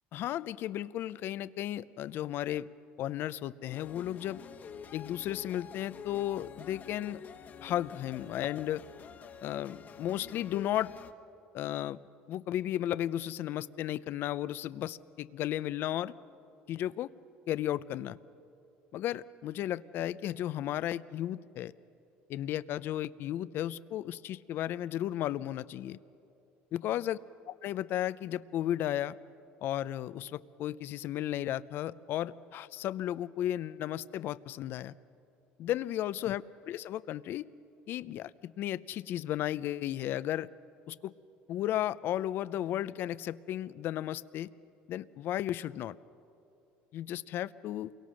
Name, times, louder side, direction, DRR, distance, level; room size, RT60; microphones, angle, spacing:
voice 1, 0.1-2.7 3.0-4.4 4.9-7.2 7.6-8.8 9.4-10.9 11.5-12.0 12.3-16.1 16.7-17.1 17.5-18.2 18.9-21.7 22.3-26.0 26.7-27.2 27.6-29.1 29.6-34.9 35.6-37.4 37.9-40.5 40.9-41.1 41.5-44.5 44.9-46.0 46.9-47.9, left 12 dB, 55° left, 17 dB, 0.6 m, -34 dB
sound 1, 3.7-11.1, left 7 dB, 40° left, 1.3 m, -47 dB
28.5 x 23.5 x 6.4 m, 2.7 s
cardioid pair, 115°, 4 cm